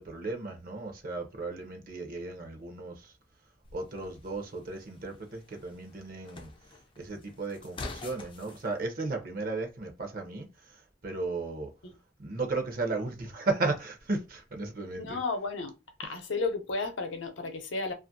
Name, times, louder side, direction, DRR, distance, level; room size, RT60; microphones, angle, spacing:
voice 1, 0.0-3.1 3.7-6.5 7.0-11.7 12.2-15.2, right 3 dB, 50° right, 0.6 m, -35 dB
sound 1, 3.6-8.7, left 3 dB, 25° left, 0.3 m, -47 dB
voice 2, 15.0-15.7 16.0-17.9, left 3 dB, 80° left, 0.6 m, -33 dB
2.5 x 2.4 x 2.6 m
head